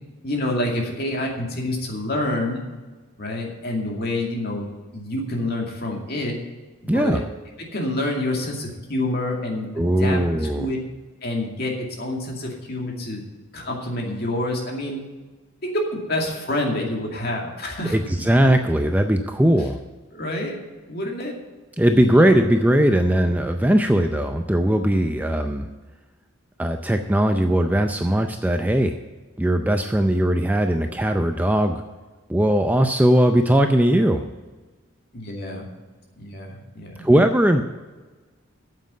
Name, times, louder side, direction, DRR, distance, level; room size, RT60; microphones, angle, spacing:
voice 1, 0.2-2.6 3.2-4.7 4.9-6.4 6.8-7.3 7.6-10.8 11.2-13.2 13.5-15.0 15.6-18.0 20.1-20.6 20.9-21.3 22.1-22.3 35.1-35.7 36.2-37.1, left 1 dB, 45° left, 0 dB, 2.3 m, -27 dB
voice 2, 6.9-7.2 9.8-10.7 17.9-19.8 21.8-25.7 26.6-29.0 29.4-31.8 32.3-34.3 37.0-37.6, right 1 dB, 10° right, 6 dB, 0.4 m, -19 dB
9.3 x 7.5 x 8.3 m, 1.3 s
head